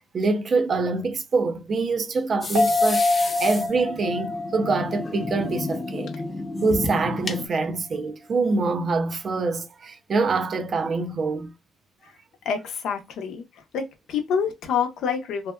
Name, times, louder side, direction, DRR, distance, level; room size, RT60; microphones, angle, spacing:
voice 1, 0.0-6.1 6.6-11.5, right 3 dB, 50° right, 0.5 m, -25 dB
sound 1, 2.4-7.5, left 2 dB, 30° left, 0.5 m, -32 dB
sound 2, 2.5-6.2 6.6-6.7, left 2 dB, 75° right, 1.1 m, -26 dB
voice 2, 12.4-13.4 13.7-13.8 14.1-15.5, left 7 dB, 80° left, 0.7 m, -26 dB
2.7 x 2.2 x 2.2 m
cardioid pair, 90°, 0 cm